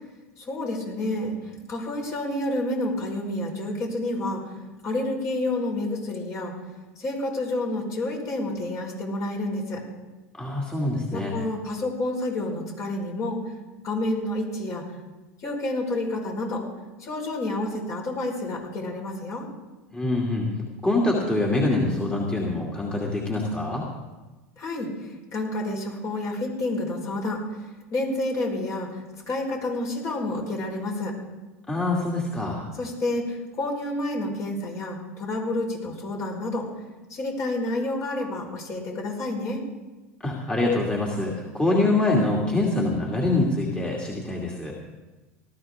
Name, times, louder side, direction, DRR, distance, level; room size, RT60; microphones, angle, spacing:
voice 1, 0.4-1.4 1.7-4.5 4.8-6.5 7.0-9.8 11.1-13.4 13.8-14.9 15.4-16.7 17.0-19.5 24.6-27.4 27.9-31.2 32.8-36.7 37.1-39.6, left 1 dB, 45° left, -1 dB, 5.3 m, -29 dB
voice 2, 10.3-11.4 19.9-20.5 20.8-23.8 31.7-32.6 40.2-44.7, left 2 dB, 15° left, -3 dB, 2.6 m, -25 dB
19.0 x 13.5 x 3.7 m, 1.2 s
hypercardioid pair, 95°, 8 cm